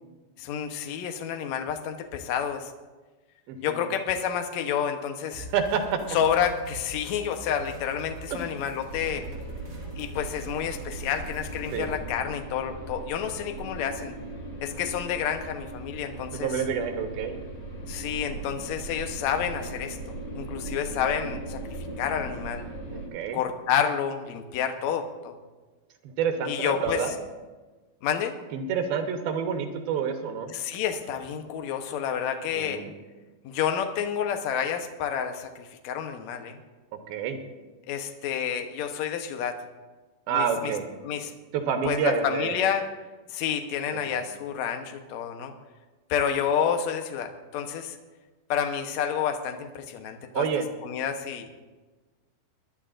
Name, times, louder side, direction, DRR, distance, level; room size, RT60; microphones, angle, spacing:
voice 1, 0.4-2.7 3.6-5.5 6.1-9.3 10.0-14.2 14.6-16.5 17.9-22.7 23.3-25.4 26.5-27.0 28.0-28.4 30.5-32.8 33.4-36.6 37.9-39.6 40.3-40.7 41.0-41.3 41.8-42.8 43.3-45.5 46.1-48.0 48.5-50.5 50.8-51.5, left 8 dB, 70° left, 5 dB, 1.8 m, -29 dB
voice 2, 3.5-3.8 5.5-6.0 8.3-8.5 11.7-11.9 16.3-17.4 22.9-23.4 26.0-27.1 28.5-30.5 32.5-32.9 37.1-37.4 40.3-40.9 41.5-42.7 43.9-44.2 50.3-50.7, right 7 dB, 80° right, 5 dB, 2.9 m, -28 dB
sound 1, 5.3-12.0, right 1 dB, 50° right, 3.2 m, -42 dB
sound 2, 8.8-23.1, right 2 dB, 55° left, 4.1 m, -39 dB
22.5 x 11.0 x 2.5 m, 1.2 s
omnidirectional pair, 4.3 m